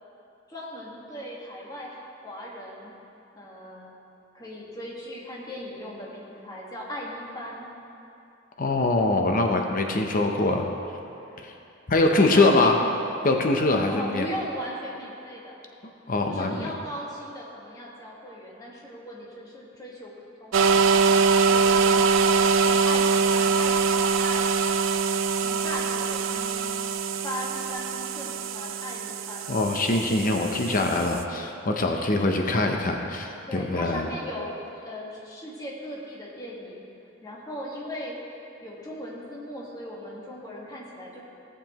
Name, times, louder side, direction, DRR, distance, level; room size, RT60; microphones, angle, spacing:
voice 1, 0.5-2.9 3.3-4.0 4.3-7.7 11.2-11.4 12.0-12.7 13.9-15.6 16.3-20.1 20.4-24.5 25.4-26.6 27.2-29.5 33.5-36.9 37.2-38.2 38.6-41.2, equal, 20° left, -4 dB, 1.6 m, -38 dB
voice 2, 8.6-10.7 11.9-12.7 13.2-14.3 16.1-16.7 29.5-34.1, left 2 dB, 45° left, 3 dB, 0.7 m, -23 dB
sound 1, 20.5-31.2, right 5 dB, 70° right, 0.4 m, -23 dB
16.0 x 6.9 x 3.0 m, 2.8 s
head